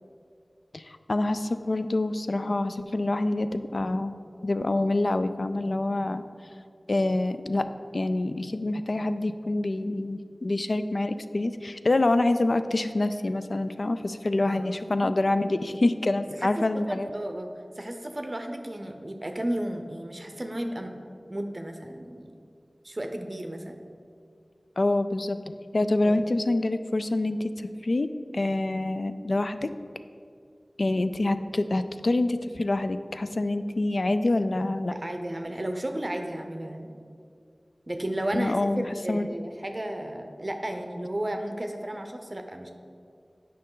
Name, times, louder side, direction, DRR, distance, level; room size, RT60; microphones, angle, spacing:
voice 1, 0.7-4.2 4.4-6.3 6.9-7.7 7.9-17.1 24.8-27.5 27.8-28.1 28.3-29.8 30.8-34.9 38.3-39.3, left 2 dB, 70° left, 10 dB, 0.3 m, -26 dB
voice 2, 16.4-17.5 17.8-20.9 21.3-22.3 22.8-23.8 26.0-26.2 34.9-36.9 37.9-42.7, right 1 dB, 40° right, 4 dB, 0.6 m, -33 dB
8.7 x 5.3 x 3.8 m, 2.3 s
wide cardioid pair, 50°, 0 cm